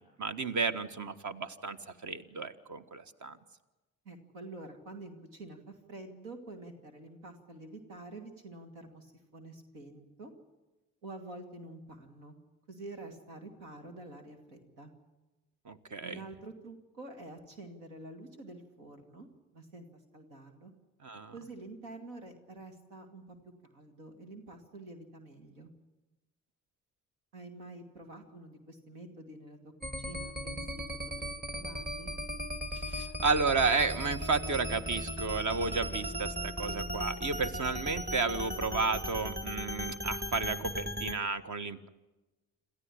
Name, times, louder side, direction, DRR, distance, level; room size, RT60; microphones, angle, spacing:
voice 1, 0.0-1.8 2.0-3.4 15.6-16.2 21.0-21.3 32.7-41.9, right 4 dB, 45° right, 10 dB, 1.6 m, -32 dB
voice 2, 4.0-10.3 11.0-12.4 12.7-15.0 16.0-19.3 19.5-19.9 20.1-20.7 21.3-23.4 23.6-25.7 27.3-30.8 31.2-32.2, right 2 dB, 85° right, 6 dB, 2.3 m, -48 dB
sound 1, 29.8-41.1, equal, 25° right, 2.5 m, -37 dB
27.5 x 14.0 x 9.9 m, 1.1 s
hypercardioid pair, 45°, 40 cm